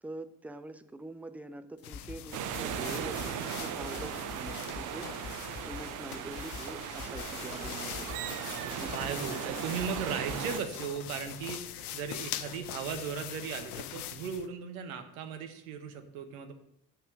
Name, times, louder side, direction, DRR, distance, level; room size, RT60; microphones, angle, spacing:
voice 1, 0.0-5.3 5.6-8.1 8.8-9.6, right 2 dB, 5° right, 11 dB, 0.4 m, -45 dB
dressing-nylons, 1.8-14.5, left 12 dB, 75° left, 0.6 m, -43 dB
sound 1, 1.8-8.4 8.7-10.6, left 5 dB, 30° left, 1.5 m, -48 dB
sound 2, 2.3-10.6, right 9 dB, 45° right, 0.8 m, -37 dB
voice 2, 8.9-11.6 11.9-16.5, right 6 dB, 65° right, 7 dB, 1.2 m, -37 dB
7.0 x 6.6 x 6.2 m, 0.79 s
figure-of-eight pair, 50°, 45 cm